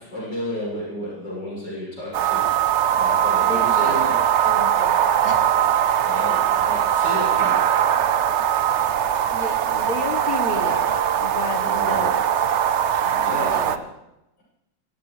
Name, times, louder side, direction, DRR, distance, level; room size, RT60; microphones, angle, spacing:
voice 1, 0.0-2.5 2.9-4.3 6.0-7.8 11.6-12.1 12.9-13.9, left 1 dB, 85° left, -6 dB, 8.2 m, -32 dB
sound 1, 2.1-13.8, right 9 dB, 65° right, 0.7 m, -21 dB
voice 2, 3.4-4.0 4.4-5.7 9.3-12.3 13.0-13.9, left 3 dB, 55° left, 5 dB, 2.0 m, -33 dB
25.0 x 14.5 x 3.4 m, 0.88 s
omnidirectional pair, 1.9 m